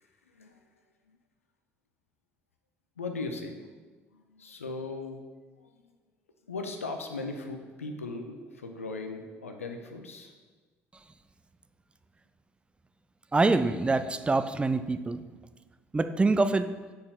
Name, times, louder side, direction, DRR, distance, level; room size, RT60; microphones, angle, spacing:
voice 1, 3.0-3.6 4.1-5.2 5.6-5.7 6.5-10.3, left 3 dB, 85° left, 5 dB, 0.4 m, -38 dB
voice 2, 13.3-15.2 15.9-16.7, right 3 dB, 15° right, 11 dB, 0.3 m, -25 dB
6.7 x 4.3 x 3.3 m, 1.3 s
figure-of-eight pair, 50°, 7 cm